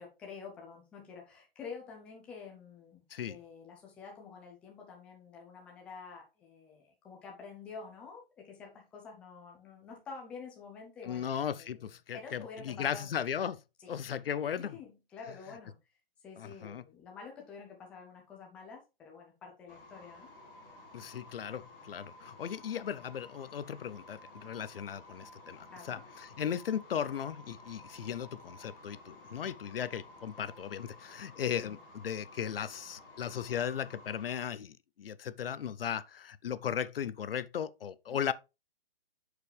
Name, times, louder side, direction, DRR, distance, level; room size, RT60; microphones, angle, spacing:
voice 1, 0.0-13.2 13.8-13.9 14.6-15.8 16.2-20.3 23.0-23.1 25.7-26.1 31.6-31.8 38.1-38.3, left 5 dB, 5° left, 0.5 m, -49 dB
voice 2, 11.0-13.6 13.9-14.8 16.4-16.8 20.9-38.3, left 8 dB, 75° left, 0.6 m, -37 dB
sound 1, 19.7-34.4, left 2 dB, 20° left, 3.0 m, -53 dB
8.2 x 4.9 x 3.3 m
hypercardioid pair, 160°, 29 cm